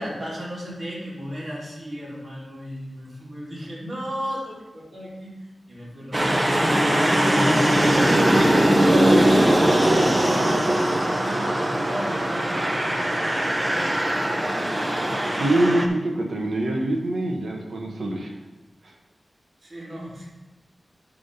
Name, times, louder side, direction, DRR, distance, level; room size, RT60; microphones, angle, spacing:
voice 1, 0.0-5.4 5.7-6.4 7.3-12.7 14.9-15.4 19.6-20.3, equal, 45° right, -6 dB, 3.1 m, -34 dB
sound 1, 6.1-15.9, right 1 dB, 20° right, 0.8 m, -20 dB
voice 2, 15.4-18.3 18.8-18.9, right 1 dB, 85° right, -1 dB, 1.3 m, -24 dB
11.0 x 3.7 x 5.3 m, 1.1 s
wide cardioid pair, 120°, 0 cm